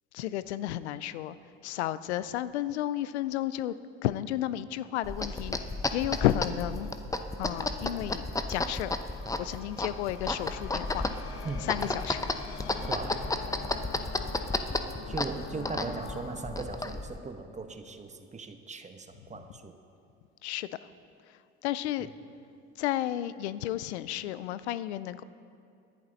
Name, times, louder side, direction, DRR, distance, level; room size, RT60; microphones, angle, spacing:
voice 1, 0.1-1.4 1.6-3.7 4.0-5.6 5.9-6.9 7.4-8.9 9.4-11.1 11.7-12.3 19.3-19.4 20.4-20.8 21.3-22.1 22.8-25.2, left 13 dB, 90° left, 16 dB, 0.5 m, -32 dB
sound 1, 5.0-17.2, left 2 dB, 10° left, 0.8 m, -33 dB
sound 2, 8.3-18.4, left 7 dB, 70° left, 1.2 m, -46 dB
voice 2, 11.4-11.8 12.9-13.2 15.1-19.8, right 4 dB, 20° right, 7 dB, 1.1 m, -39 dB
19.0 x 11.0 x 4.1 m, 2.5 s
hypercardioid pair, 75°, 32 cm